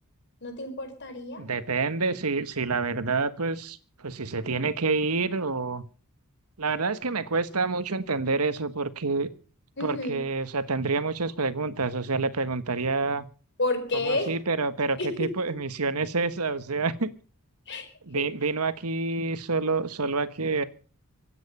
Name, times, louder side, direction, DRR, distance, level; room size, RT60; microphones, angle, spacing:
voice 1, 0.4-1.4 9.8-10.2 13.6-14.3 15.0-15.5 17.7-17.9 18.1-18.3, left 2 dB, 50° left, 7 dB, 4.9 m, -30 dB
voice 2, 1.4-5.8 6.6-9.3 9.8-13.3 14.0-17.1 18.1-20.6, right 4 dB, 85° right, 13 dB, 1.4 m, -28 dB
24.5 x 9.3 x 5.5 m, 0.40 s
head